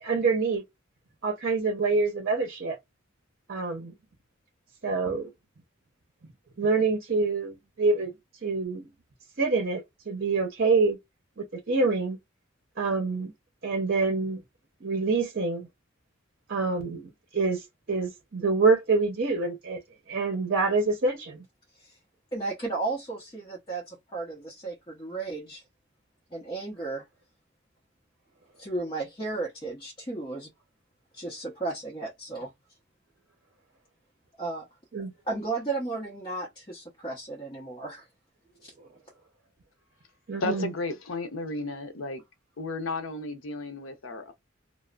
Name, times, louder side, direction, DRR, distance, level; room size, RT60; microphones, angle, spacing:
voice 1, 0.0-0.6 1.2-2.8 3.5-3.9 4.8-5.3 6.6-8.1 8.4-8.9 9.4-11.0 11.4-12.2 12.8-13.3 13.6-14.4 14.8-15.7 16.5-19.8 20.1-21.4 34.9-35.1 40.3-40.7, right 4 dB, 50° right, 0.7 m, -26 dB
voice 2, 22.3-25.6 26.3-27.0 28.6-30.5 31.1-32.5 34.4-34.7 35.3-38.0 38.6-38.7, right 3 dB, 25° left, 0.8 m, -34 dB
voice 3, 40.4-42.2 42.6-44.3, left 3 dB, 80° left, 0.6 m, -33 dB
3.0 x 2.0 x 2.2 m
head